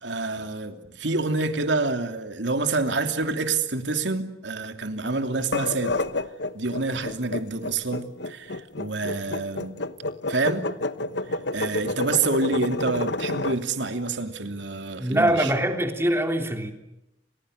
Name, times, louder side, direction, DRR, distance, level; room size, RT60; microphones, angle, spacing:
voice 1, 0.0-6.0 6.5-9.7 10.3-10.6 11.3-15.5, right 3 dB, 80° right, 2.9 m, -27 dB
sound 1, 5.4-13.6, left 2 dB, 70° left, 1.2 m, -29 dB
voice 2, 15.0-16.7, right 1 dB, 15° right, 3.3 m, -23 dB
30.0 x 27.0 x 6.6 m
head